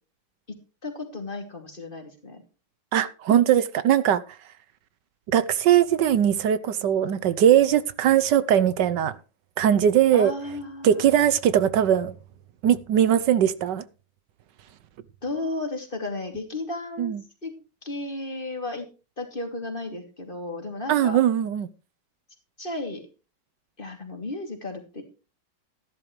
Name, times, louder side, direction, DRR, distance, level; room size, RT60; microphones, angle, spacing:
voice 1, 0.5-2.4 10.1-11.1 15.2-17.2 17.4-17.5 17.8-18.9 19.2-21.2 22.6-23.0 23.8-25.0, left 2 dB, 30° left, 2.8 m, -34 dB
voice 2, 2.9-4.2 5.3-9.1 9.6-10.3 10.8-12.1 12.6-13.8 17.0-17.2 20.9-21.7, right 10 dB, 75° right, 1.4 m, -20 dB
14.0 x 12.0 x 3.1 m
omnidirectional pair, 1.9 m